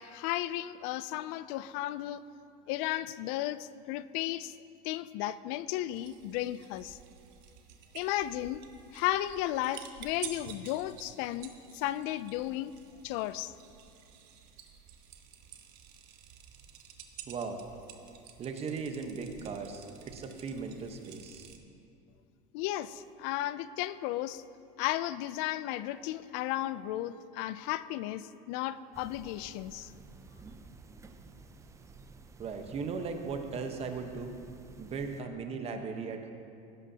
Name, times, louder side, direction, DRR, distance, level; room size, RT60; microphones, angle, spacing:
voice 1, 0.0-2.2 2.7-4.5 4.8-7.0 7.9-8.6 8.9-12.7 13.0-13.5 22.5-24.4 24.8-29.9, left 14 dB, 65° left, 16 dB, 0.4 m, -34 dB
sound 1, 5.9-21.6, right 9 dB, 60° right, 1.1 m, -51 dB
voice 2, 17.3-17.6 18.4-21.5 32.4-34.3 34.8-36.3, right 5 dB, 30° right, 5 dB, 1.1 m, -37 dB
sound 2, 28.9-35.2, right 3 dB, 15° right, 0.5 m, -53 dB
16.5 x 11.5 x 2.8 m, 2.5 s
supercardioid pair, 135°, 20 cm